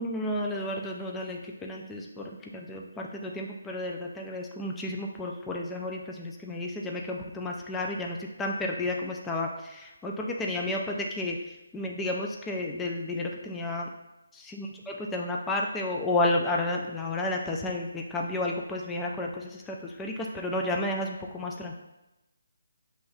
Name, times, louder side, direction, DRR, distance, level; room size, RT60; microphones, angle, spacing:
voice 1, 0.0-11.4 11.7-13.9 14.3-14.7 15.1-21.8, left 2 dB, 10° left, 0 dB, 0.3 m, -32 dB
6.8 x 3.1 x 2.3 m, 0.98 s
figure-of-eight pair, 160°, 0 cm